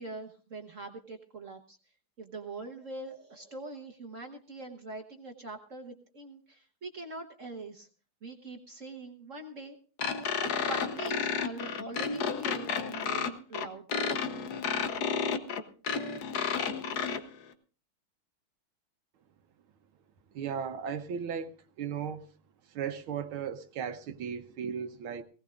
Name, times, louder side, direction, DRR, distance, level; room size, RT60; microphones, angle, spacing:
voice 1, 0.0-1.8 2.2-7.9 8.2-9.8 10.4-14.1, right 2 dB, 45° right, 3 dB, 1.3 m, -43 dB
sound 1, 10.0-17.2, left 6 dB, 55° left, 1.3 m, -31 dB
voice 2, 20.3-22.2 22.7-25.2, right 7 dB, 80° right, 8 dB, 1.7 m, -36 dB
19.0 x 18.0 x 2.5 m, 0.38 s
omnidirectional pair, 2.3 m